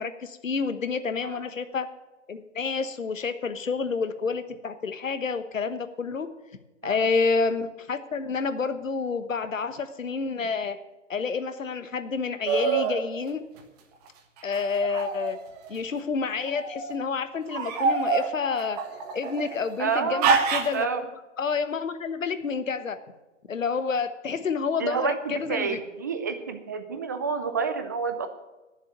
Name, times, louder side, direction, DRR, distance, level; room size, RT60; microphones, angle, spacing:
voice 1, 0.0-1.9 2.3-6.3 6.8-10.8 11.1-13.4 14.4-15.4 15.7-18.8 19.1-23.0 23.5-25.8, left 5 dB, 80° left, 11 dB, 1.2 m, -29 dB
sound 1, 12.5-13.0 14.5-15.7 16.5-16.9 17.5-19.6 20.2-20.8, right 5 dB, 30° right, 1.4 m, -26 dB
voice 2, 19.8-20.3 20.7-21.0 24.8-28.3, right 5 dB, 15° right, 8 dB, 0.4 m, -29 dB
10.5 x 7.4 x 9.0 m, 1.1 s
hypercardioid pair, 140°, 38 cm